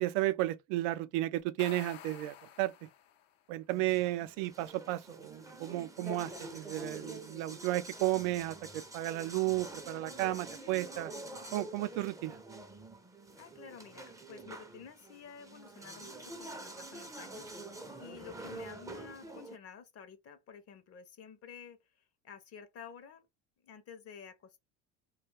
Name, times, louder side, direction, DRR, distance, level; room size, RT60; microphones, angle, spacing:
voice 1, 0.0-2.7 3.5-11.1 11.5-12.4, right 16 dB, 75° right, 0.5 m, -33 dB
sound 1, 1.4-3.4, left 10 dB, 80° left, 0.7 m, -50 dB
sound 2, 3.7-19.6, right 2 dB, 10° right, 0.5 m, -47 dB
voice 2, 6.0-6.3 13.4-23.3 23.6-24.6, left 7 dB, 40° left, 0.6 m, -51 dB
2.3 x 2.3 x 3.2 m
supercardioid pair, 90°, 36 cm